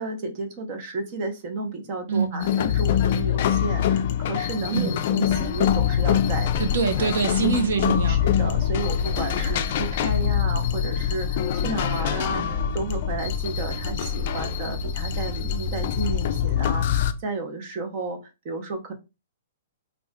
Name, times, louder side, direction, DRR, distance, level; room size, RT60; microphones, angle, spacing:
voice 1, 0.0-6.5 7.0-7.1 8.1-18.2 18.4-18.9, right 3 dB, 30° right, 0.8 m, -32 dB
voice 2, 2.1-2.4 4.7-4.9 6.6-8.2, right 5 dB, 70° right, 0.8 m, -24 dB
sound 1, 2.4-17.1, left 10 dB, 45° left, 0.4 m, -25 dB
sound 2, 5.2-17.1, left 5 dB, 5° left, 1.0 m, -30 dB
3.2 x 2.5 x 3.6 m
hypercardioid pair, 170°, 0 cm